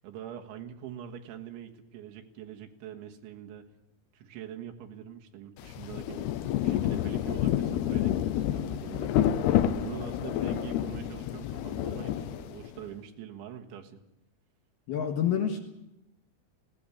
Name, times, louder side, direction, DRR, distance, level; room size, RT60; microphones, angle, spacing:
voice 1, 0.0-3.7 4.1-6.3 6.6-9.2 9.6-14.0, right 9 dB, 75° right, 3 dB, 3.6 m, -44 dB
Rain, 5.6-12.8, left 11 dB, 85° left, 2.3 m, -29 dB
voice 2, 14.9-15.6, left 8 dB, 60° left, 4 dB, 3.0 m, -27 dB
19.0 x 17.5 x 8.5 m, 0.87 s
omnidirectional pair, 5.8 m